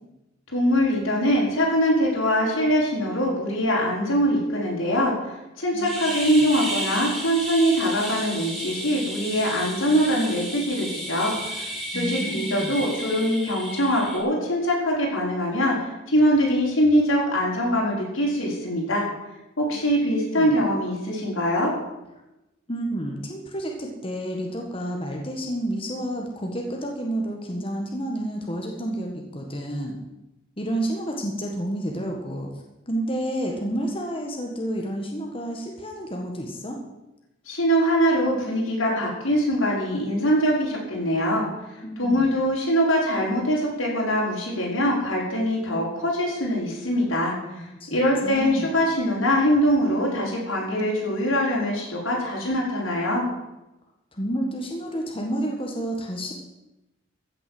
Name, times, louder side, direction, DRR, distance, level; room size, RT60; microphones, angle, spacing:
voice 1, 0.5-19.0 19.6-21.7 37.5-41.5 42.0-53.3, equal, 85° left, -4 dB, 5.7 m, -23 dB
sound 1, 5.8-14.2, right 1 dB, ahead, 3.6 m, -33 dB
voice 2, 11.9-12.7 19.7-19.8 20.3-20.5 22.7-30.0 30.6-32.5 32.9-36.8 41.8-42.3 47.8-48.7 54.1-56.3, right 1 dB, 25° left, 0 dB, 1.7 m, -30 dB
15.0 x 7.6 x 7.8 m, 0.96 s
head